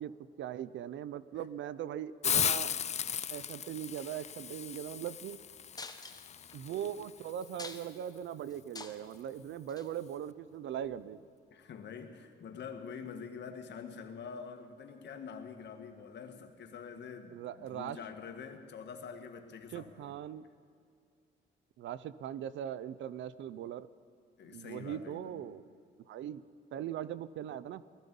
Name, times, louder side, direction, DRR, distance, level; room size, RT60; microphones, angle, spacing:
voice 1, 0.0-2.7 3.3-5.4 6.5-11.2 17.3-18.0 19.7-20.4 21.8-23.9 24.5-25.6 26.1-26.4 26.7-27.8, right 10 dB, 70° right, 17 dB, 0.6 m, -40 dB
Hiss, 2.2-7.9, left 8 dB, 35° left, 0.4 m, -36 dB
sound 1, 5.8-6.6 7.0-7.1 7.4-8.1 8.5-9.2 9.7-9.9 10.8-11.0, left 3 dB, 20° left, 1.2 m, -46 dB
voice 2, 11.5-20.1 24.4-25.4, left 6 dB, 60° left, 5 dB, 1.7 m, -46 dB
18.5 x 14.0 x 5.4 m, 2.3 s
cardioid pair, 90°, 20 cm